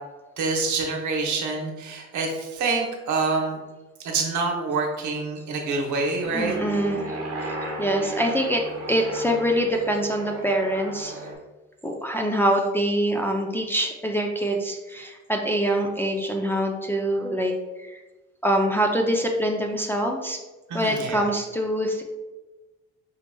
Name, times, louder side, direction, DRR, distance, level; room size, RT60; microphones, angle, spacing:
voice 1, 0.4-3.6 4.0-6.5 20.7-21.3, right 3 dB, 75° right, 1 dB, 1.0 m, -26 dB
Aircraft, 6.2-11.3, right 1 dB, 50° right, 1.1 m, -35 dB
voice 2, 6.3-7.1 7.8-11.2 11.8-17.5 17.8-18.0 18.4-20.4 20.7-22.0, equal, 5° left, 1 dB, 0.4 m, -24 dB
5.4 x 2.8 x 2.2 m, 1.2 s
cardioid pair, 90°, 30 cm